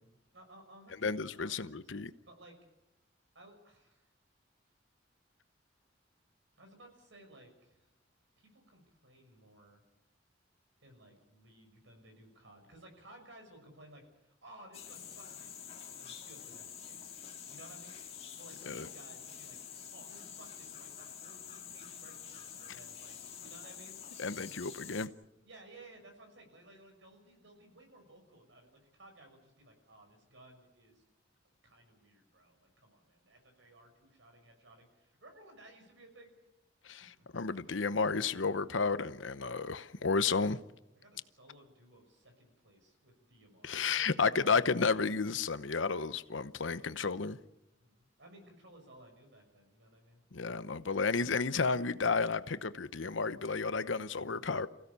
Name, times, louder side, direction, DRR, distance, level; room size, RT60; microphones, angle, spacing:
voice 1, 0.3-2.6 3.3-4.1 6.6-7.9 8.4-9.8 10.8-15.5 15.8-17.0 17.5-18.0 18.4-24.0 25.4-31.0 31.4-36.3 37.0-37.6 40.9-44.3 47.8-50.2, right 1 dB, 75° right, 6.1 m, -58 dB
voice 2, 1.0-2.1 18.7-18.9 24.2-25.1 36.8-40.6 43.6-47.4 50.3-54.7, left 4 dB, 85° left, 0.9 m, -32 dB
sound 1, 14.7-25.1, left 8 dB, 35° left, 2.1 m, -48 dB
28.0 x 16.0 x 7.0 m
head